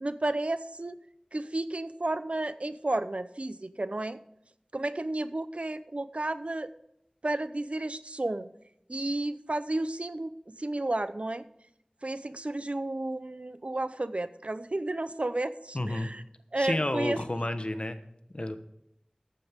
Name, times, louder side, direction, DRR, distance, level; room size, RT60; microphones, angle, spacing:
voice 1, 0.0-1.0 1.3-4.2 4.7-6.7 7.2-8.5 8.9-11.4 12.0-16.2 16.5-17.2, right 2 dB, 60° right, 13 dB, 0.7 m, -32 dB
voice 2, 15.7-16.1 16.6-18.0 18.3-18.6, left 1 dB, 50° left, 10 dB, 1.1 m, -30 dB
14.0 x 9.3 x 3.6 m, 0.79 s
wide cardioid pair, 40°, 2 cm